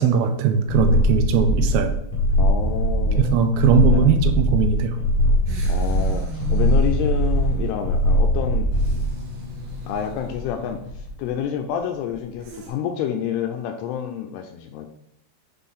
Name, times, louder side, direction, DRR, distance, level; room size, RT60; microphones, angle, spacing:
voice 1, 0.0-1.9 3.2-5.0, right 6 dB, 85° right, 7 dB, 2.9 m, -19 dB
putrid heartbeat, 0.7-9.1, equal, 50° left, 2.0 m, -20 dB
voice 2, 2.4-3.4 3.9-4.2 5.7-8.7 9.9-14.9, left 9 dB, 80° left, 5 dB, 2.4 m, -28 dB
sound 1, 5.5-12.7, right 1 dB, 65° right, 2.7 m, -36 dB
7.4 x 4.3 x 3.6 m, 0.78 s
omnidirectional pair, 5.0 m